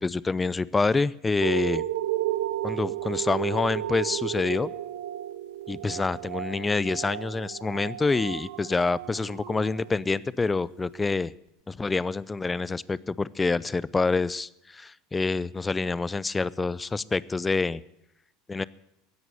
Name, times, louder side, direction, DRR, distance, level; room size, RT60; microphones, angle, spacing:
voice 1, 0.0-1.8 2.6-4.7 5.7-11.3 11.7-17.8 18.5-18.6, left 3 dB, 15° left, 21 dB, 0.5 m, -27 dB
sound 1, 1.4-10.3 10.9-11.0, right 14 dB, 70° right, 0.7 m, -33 dB
16.0 x 11.0 x 6.7 m, 0.81 s
hypercardioid pair, 75°, 0 cm